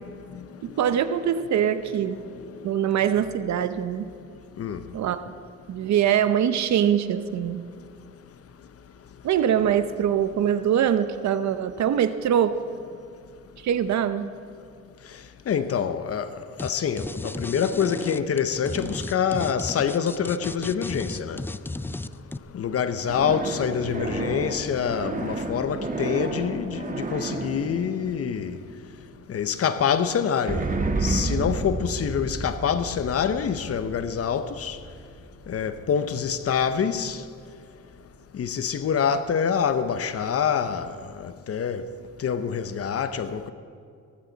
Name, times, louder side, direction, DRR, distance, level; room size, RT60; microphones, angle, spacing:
voice 1, 0.6-2.2 2.6-4.1 4.9-5.3 5.7-7.7 9.2-12.6 13.6-14.3, right 9 dB, 65° right, 0.8 m, -23 dB
voice 2, 15.5-16.3 16.6-21.4 22.5-28.6 29.3-30.6 31.0-34.8 35.5-37.2 38.3-40.9 41.2-41.8 42.2-43.5, left 7 dB, 50° left, 0.9 m, -26 dB
sound 1, 16.6-16.7 17.0-22.4, left 2 dB, 10° left, 0.3 m, -34 dB
sound 2, 23.1-29.0 30.5-35.8, right 3 dB, 25° right, 1.4 m, -31 dB
17.5 x 14.5 x 4.0 m
cardioid pair, 90°, 30 cm